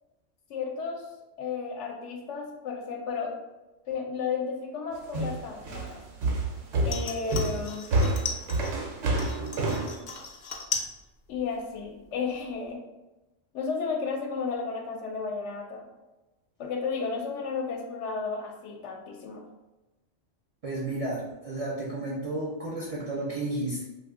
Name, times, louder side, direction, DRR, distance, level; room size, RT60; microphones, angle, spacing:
voice 1, 0.5-1.1 1.4-3.4 3.9-6.0 6.8-8.0 11.3-12.8 13.5-15.9 16.6-19.5, left 5 dB, 75° left, 2 dB, 0.9 m, -33 dB
sound 1, 5.1-9.9, right 2 dB, 75° right, 1.0 m, -28 dB
sound 2, 6.8-8.8 9.2-11.0 11.2-11.8 12.2-12.3, left 5 dB, 55° left, 0.5 m, -36 dB
voice 2, 20.6-23.8, right 2 dB, 45° right, -6 dB, 0.5 m, -32 dB
2.5 x 2.4 x 3.6 m, 1.0 s
omnidirectional pair, 1.2 m